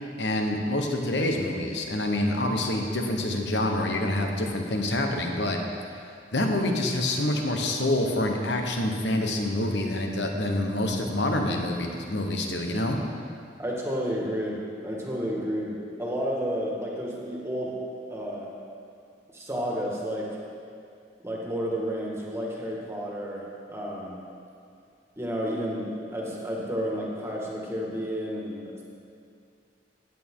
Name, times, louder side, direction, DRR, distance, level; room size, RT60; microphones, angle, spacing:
voice 1, 0.2-5.6 6.3-13.0, left 1 dB, 70° left, 2 dB, 1.2 m, -27 dB
voice 2, 13.6-17.8 18.1-18.5 19.3-20.4 21.2-24.1 25.2-28.8, equal, 15° right, -3 dB, 1.8 m, -31 dB
15.0 x 8.8 x 3.8 m, 2.4 s
head